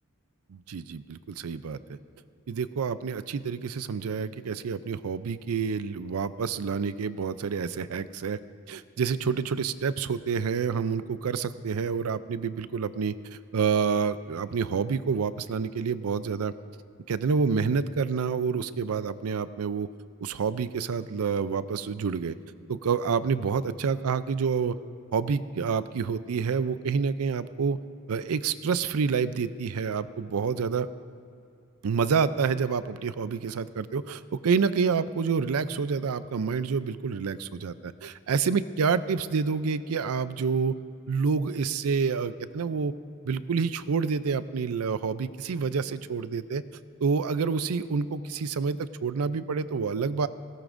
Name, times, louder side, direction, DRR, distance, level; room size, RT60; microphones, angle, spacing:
voice 1, 0.5-2.0 2.5-8.4 8.7-13.1 13.5-16.5 17.1-19.9 20.2-22.4 22.7-24.8 25.1-27.8 28.1-30.9 31.8-40.7 41.1-42.9 43.2-46.6 47.0-50.3, right 5 dB, 75° right, 14 dB, 0.5 m, -28 dB
18.5 x 17.5 x 2.6 m, 2.7 s
head